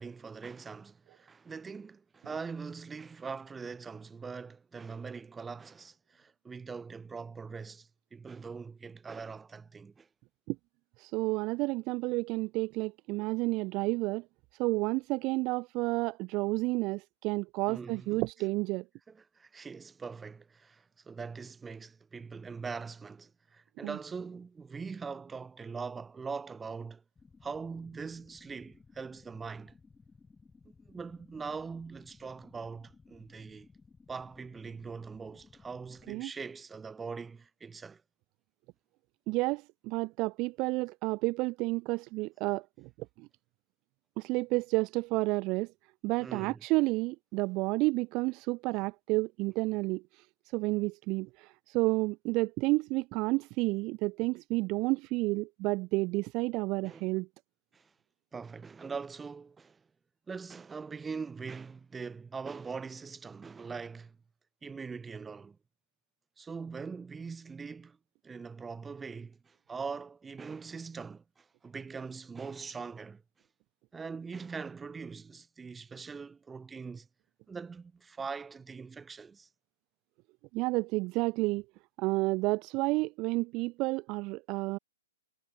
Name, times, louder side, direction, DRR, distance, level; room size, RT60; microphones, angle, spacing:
voice 1, 0.0-10.1 17.7-18.2 19.1-27.0 27.4-29.7 30.9-33.7 34.1-38.0 46.2-46.6 56.9-57.1 57.7-57.9 58.3-59.8 60.3-64.2 64.6-65.6 66.4-68.0 68.2-73.2 73.9-77.1 77.5-79.5, right 5 dB, 10° right, 0.9 m, -42 dB
voice 2, 11.0-14.2 14.6-18.8 23.8-24.0 36.1-36.3 39.3-42.9 43.2-43.3 44.2-45.7 46.0-50.3 50.5-57.3 80.5-81.6 82.0-84.8, right 24 dB, 30° right, 0.4 m, -30 dB
sound 1, 27.2-36.2, left 4 dB, 10° left, 7.1 m, -59 dB
figure-of-eight pair, 115°, 0 cm